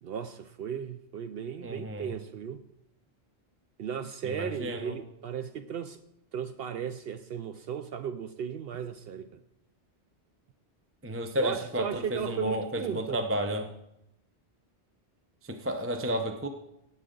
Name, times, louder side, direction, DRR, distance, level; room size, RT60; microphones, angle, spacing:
voice 1, 0.0-2.6 3.8-6.0 6.3-9.4 11.4-13.2, right 8 dB, 65° right, 0.7 m, -36 dB
voice 2, 1.6-2.1 4.2-4.9 11.0-13.7 15.5-16.5, equal, 15° right, 0.6 m, -32 dB
17.5 x 7.8 x 3.8 m
omnidirectional pair, 1.1 m